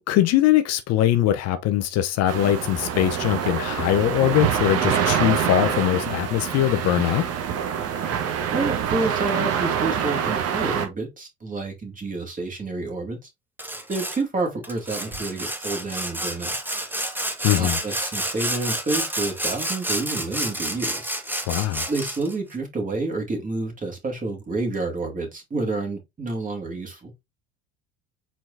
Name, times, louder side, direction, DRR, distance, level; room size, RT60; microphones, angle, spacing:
voice 1, 0.0-7.2 17.4-17.8 21.5-21.8, left 13 dB, 50° left, 0.6 m, -21 dB
sound 1, 2.3-10.9, right 8 dB, 45° right, 1.2 m, -25 dB
voice 2, 8.5-13.3 13.9-16.5 17.6-21.1 21.9-27.1, right 3 dB, 25° right, 2.2 m, -29 dB
Sawing, 13.6-14.2 14.6-22.3, right 1 dB, 5° right, 1.0 m, -29 dB
4.6 x 4.3 x 2.6 m
hypercardioid pair, 80°, 33 cm